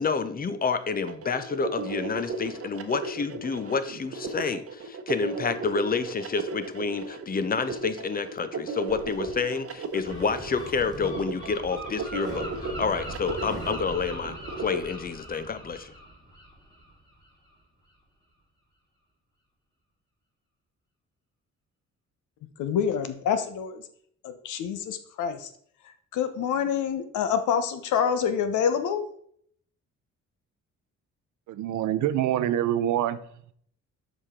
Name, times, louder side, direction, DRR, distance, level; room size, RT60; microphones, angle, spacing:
voice 1, 0.0-15.9, left 5 dB, 30° left, 0.7 m, -29 dB
sound 1, 1.1-14.8, right 4 dB, 50° right, 0.9 m, -35 dB
sound 2, 8.9-9.4 9.9-11.6 12.1-13.9, equal, 15° right, 2.0 m, -44 dB
Gull seagull, 10.0-17.5, right 1 dB, 15° left, 2.8 m, -41 dB
voice 2, 22.6-23.8 24.2-25.5 26.1-29.1, left 7 dB, 80° left, 0.9 m, -27 dB
voice 3, 31.5-33.2, right 11 dB, 75° right, 0.6 m, -25 dB
7.2 x 5.0 x 3.7 m
cardioid pair, 90°, 30 cm